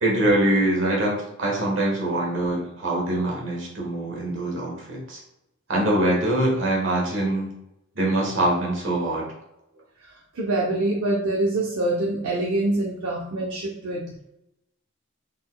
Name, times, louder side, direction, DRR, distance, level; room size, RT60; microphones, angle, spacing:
voice 1, 0.0-5.2 5.7-7.5 7.9-9.2, right 1 dB, 60° right, -2 dB, 1.3 m, -23 dB
voice 2, 10.0-14.3, right 2 dB, 85° right, -3 dB, 0.7 m, -25 dB
3.9 x 3.9 x 2.2 m, 0.86 s
head